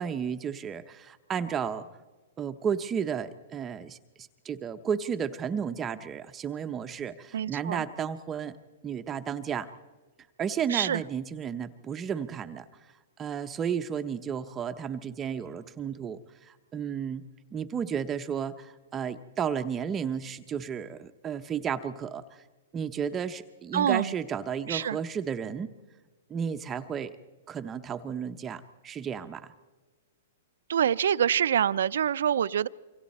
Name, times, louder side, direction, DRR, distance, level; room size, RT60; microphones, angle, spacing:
voice 1, 0.0-1.9 2.4-8.6 8.8-9.7 10.4-17.2 17.5-22.4 22.7-25.7 26.3-27.2 27.5-29.5, right 7 dB, 20° right, 8 dB, 0.8 m, -33 dB
voice 2, 7.3-7.8 10.7-11.0 23.7-24.1 24.7-25.0 30.7-32.7, right 9 dB, 75° right, 17 dB, 0.6 m, -25 dB
27.0 x 24.5 x 4.3 m, 1.3 s
hypercardioid pair, 145°, 0 cm